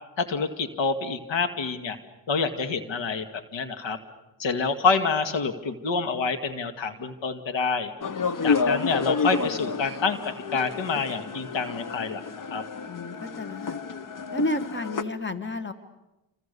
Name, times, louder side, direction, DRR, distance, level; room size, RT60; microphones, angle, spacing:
voice 1, 0.2-2.0 2.3-3.3 3.5-4.0 4.4-7.9 8.4-12.2 12.5-12.6, left 4 dB, 70° left, 9 dB, 2.3 m, -27 dB
sound 1, 8.0-15.0, left 5 dB, 40° left, 1.3 m, -30 dB
voice 2, 12.8-13.8 14.3-15.7, left 1 dB, 25° left, 10 dB, 1.9 m, -31 dB
28.0 x 26.5 x 7.0 m, 1.0 s
cardioid pair, 70°, 47 cm